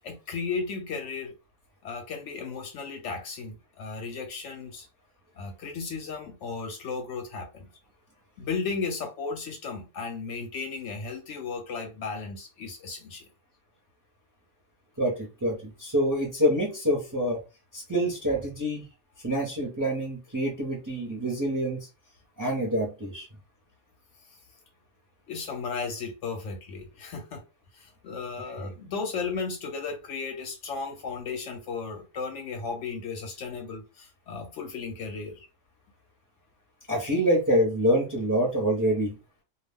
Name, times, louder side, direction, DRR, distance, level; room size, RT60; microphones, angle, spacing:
voice 1, 0.0-1.3 1.8-4.9 5.4-7.7 8.4-13.3 25.3-27.4 27.7-35.5, left 4 dB, 65° left, 0.8 m, -35 dB
voice 2, 15.0-17.4 17.7-18.9 19.2-21.9 22.4-23.3 36.9-39.2, equal, 20° right, 0.5 m, -26 dB
2.3 x 2.2 x 3.4 m
omnidirectional pair, 1.5 m